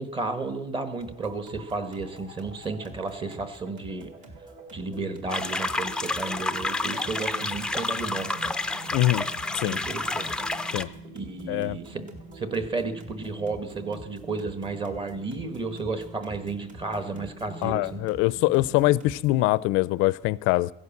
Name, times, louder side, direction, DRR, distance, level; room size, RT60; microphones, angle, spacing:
voice 1, 0.0-4.1 4.7-8.5 9.6-10.4 11.1-12.0 12.3-18.0, right 3 dB, 25° right, 10 dB, 1.3 m, -33 dB
sound 1, 1.0-19.4, right 2 dB, 40° right, 2.2 m, -45 dB
sound 2, 5.3-10.8, left 2 dB, 5° left, 0.5 m, -29 dB
voice 2, 8.9-9.2 9.5-9.8 10.7-10.9 11.5-11.8 17.6-20.7, left 18 dB, 80° left, 20 dB, 0.5 m, -23 dB
16.0 x 11.0 x 7.2 m, 0.83 s
cardioid pair, 165°, 20 cm